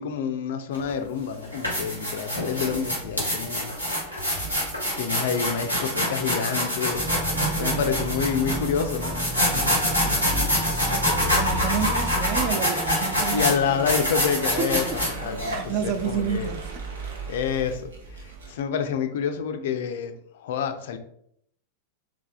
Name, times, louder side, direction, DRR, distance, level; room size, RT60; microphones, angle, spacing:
voice 1, 0.0-3.8 4.9-7.1 7.6-9.2 9.5-9.7 13.3-16.5 17.2-17.9 18.5-20.1 20.4-21.0, left 7 dB, 55° left, 0.4 m, -28 dB
sound 1, 0.7-0.9 1.4-15.5, equal, 90° right, 1.3 m, -26 dB
sound 2, 6.9-12.5, equal, ahead, 0.9 m, -31 dB
voice 2, 7.3-7.9 10.8-14.0 14.4-15.0 15.5-16.9, right 7 dB, 40° right, 0.4 m, -30 dB
sound 3, 13.2-18.5, right 4 dB, 70° right, 0.8 m, -38 dB
3.4 x 3.3 x 2.3 m
figure-of-eight pair, 90°, 0 cm